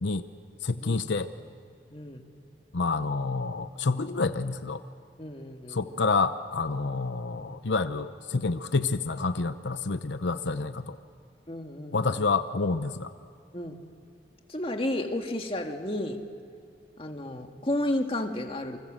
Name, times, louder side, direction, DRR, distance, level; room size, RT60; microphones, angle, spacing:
voice 1, 0.6-1.3 2.7-4.8 5.7-11.0 11.9-13.1, left 3 dB, 80° left, 10 dB, 0.8 m, -28 dB
voice 2, 1.9-2.2 5.2-6.0 11.5-12.2 13.5-13.8 14.5-16.2 17.0-18.8, left 1 dB, 30° left, 4 dB, 1.8 m, -32 dB
29.0 x 25.5 x 7.6 m, 2.4 s
head